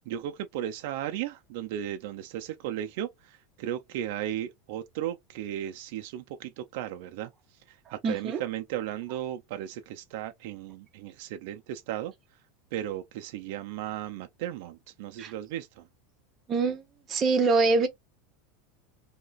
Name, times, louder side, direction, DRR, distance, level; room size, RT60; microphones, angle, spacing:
voice 1, 0.0-7.3 7.7-12.1 12.7-15.8, right 11 dB, 60° right, 0.4 m, -35 dB
voice 2, 8.0-8.4 15.2-15.3 16.5-16.8 17.1-17.9, right 3 dB, 25° right, 0.8 m, -24 dB
2.9 x 2.4 x 3.9 m
supercardioid pair, 160°, 0 cm